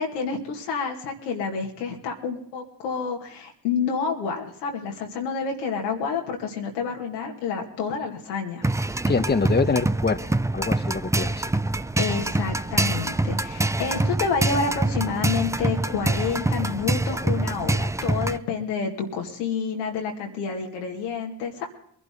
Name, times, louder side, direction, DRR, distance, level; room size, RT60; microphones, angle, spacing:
voice 1, 0.0-8.6 12.0-21.7, left 5 dB, 90° left, 1 dB, 2.2 m, -29 dB
sound 1, 8.6-18.4, right 2 dB, 5° right, 0.5 m, -25 dB
voice 2, 9.1-10.2 10.5-11.4, left 4 dB, 20° left, 9 dB, 1.1 m, -24 dB
23.0 x 11.5 x 3.8 m, 0.65 s
hypercardioid pair, 45°, 49 cm